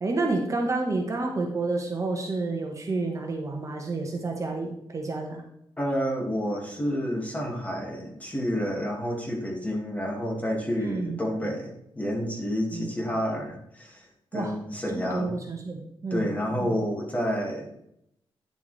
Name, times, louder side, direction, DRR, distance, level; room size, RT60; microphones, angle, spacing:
voice 1, 0.0-5.4 10.8-11.2 12.7-12.9 14.3-14.6 14.9-16.3 16.6-16.7, right 3 dB, 35° right, 2 dB, 1.4 m, -29 dB
voice 2, 5.8-15.4 16.1-17.7, equal, 15° left, -1 dB, 2.2 m, -29 dB
10.0 x 7.0 x 3.4 m, 0.77 s
wide cardioid pair, 135°, 9 cm